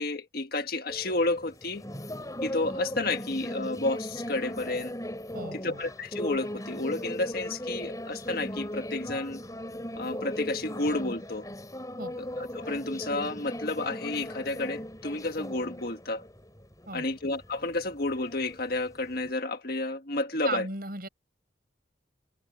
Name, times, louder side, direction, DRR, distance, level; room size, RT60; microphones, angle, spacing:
voice 1, 0.0-1.8 2.4-4.9 5.5-9.4 10.0-11.5 12.2-16.2 16.9-20.7, left 2 dB, 50° left, 1.6 m, -31 dB
sound 1, 0.9-19.3, left 1 dB, 20° left, 4.1 m, -38 dB
voice 2, 5.3-5.8 12.0-12.2 16.9-17.1 20.4-21.1, right 2 dB, 50° right, 7.5 m, -36 dB
head